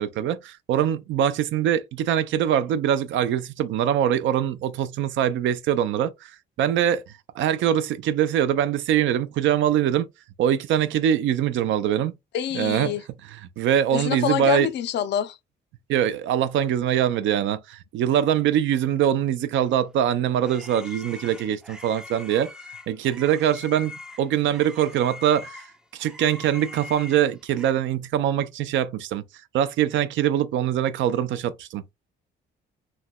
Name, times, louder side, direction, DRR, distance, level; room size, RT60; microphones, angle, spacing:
voice 1, 0.0-6.3 6.6-7.0 7.4-10.1 10.4-12.1 12.5-13.0 13.2-14.7 15.9-22.5 22.9-25.6 25.9-29.2 29.5-31.8, right 10 dB, 75° right, 0.4 m, -23 dB
voice 2, 12.3-13.0 13.9-15.4, left 10 dB, 60° left, 0.4 m, -26 dB
sound 1, 19.8-27.7, left 2 dB, 5° right, 0.4 m, -43 dB
3.1 x 2.7 x 2.2 m
cardioid pair, 90°, 20 cm